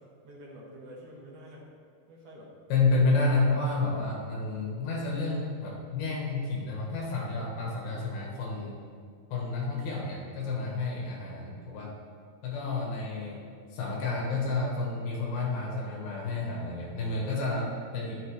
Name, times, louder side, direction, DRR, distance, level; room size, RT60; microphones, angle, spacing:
voice 1, 0.2-1.7 2.1-2.5 3.1-3.6 9.7-9.9 13.1-13.4, equal, 60° right, -3 dB, 1.7 m, -49 dB
voice 2, 2.7-8.8 9.3-11.9 12.4-13.4 13.7-18.2, left 3 dB, 70° left, -2 dB, 3.1 m, -30 dB
11.5 x 7.8 x 3.2 m, 2.1 s
omnidirectional pair, 4.5 m